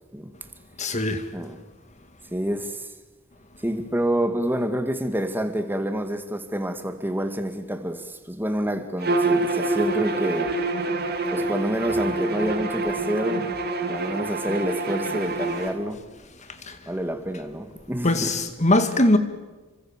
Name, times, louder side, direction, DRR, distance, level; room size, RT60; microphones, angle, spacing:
voice 1, 0.8-1.3 16.6-16.8 18.0-19.2, left 1 dB, 35° left, 2.2 m, -21 dB
voice 2, 2.3-2.9 3.6-10.6 11.3-13.5 13.9-16.0 16.9-18.3, equal, 10° right, 1.9 m, -28 dB
Bowed string instrument, 9.0-15.7, right 2 dB, 50° right, 2.6 m, -26 dB
29.5 x 25.0 x 7.4 m
head